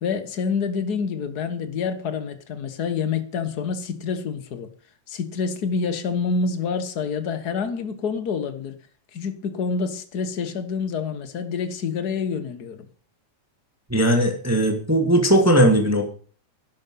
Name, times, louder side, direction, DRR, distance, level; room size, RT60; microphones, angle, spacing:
voice 1, 0.0-4.7 5.1-8.8 9.1-12.9, left 5 dB, 75° left, 0.8 m, -27 dB
voice 2, 13.9-16.1, right 1 dB, 5° right, 1.9 m, -18 dB
11.5 x 11.5 x 5.7 m
omnidirectional pair, 3.9 m